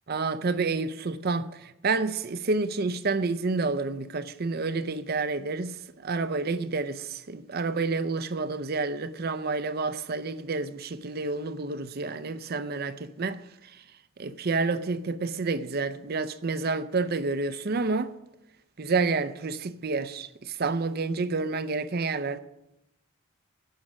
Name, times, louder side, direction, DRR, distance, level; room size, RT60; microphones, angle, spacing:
voice 1, 0.1-13.4 14.2-18.1 18.8-22.4, right 3 dB, 45° right, 0.6 m, -29 dB
10.5 x 10.5 x 6.1 m
head